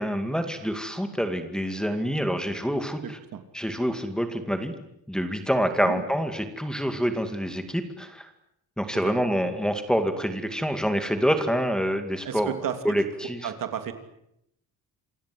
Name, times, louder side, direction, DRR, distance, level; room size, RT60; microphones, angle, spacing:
voice 1, 0.0-3.2 3.5-4.7 5.1-8.3 8.8-12.5 12.8-13.4, equal, ahead, 6 dB, 2.2 m, -26 dB
voice 2, 3.0-3.4 5.8-6.1 12.2-13.1 13.4-13.9, right 9 dB, 60° right, 7 dB, 3.1 m, -33 dB
27.5 x 25.0 x 7.8 m, 0.79 s
cardioid pair, 170°, 37 cm